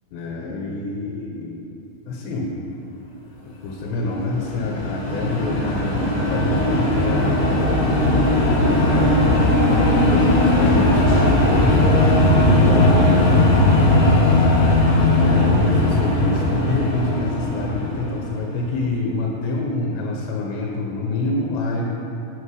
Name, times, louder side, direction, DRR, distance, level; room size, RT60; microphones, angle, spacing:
voice 1, 0.1-1.7 2.1-2.5 3.6-7.7 8.6-10.0 10.4-13.0 15.2-22.0, left 2 dB, 85° left, -1 dB, 3.3 m, -27 dB
sound 1, 4.0-18.5, left 1 dB, 55° left, 1.8 m, -18 dB
11.5 x 8.9 x 4.9 m, 2.8 s
omnidirectional pair, 4.8 m